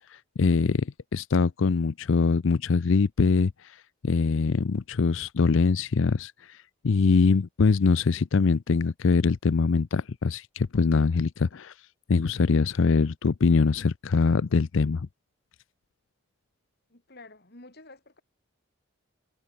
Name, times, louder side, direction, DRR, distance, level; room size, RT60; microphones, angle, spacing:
voice 1, 0.1-3.8 4.0-6.6 6.8-11.7 12.1-15.1, left 4 dB, 65° left, 0.5 m, -23 dB
voice 2, 16.9-18.2, left 2 dB, 50° left, 3.7 m, -50 dB
head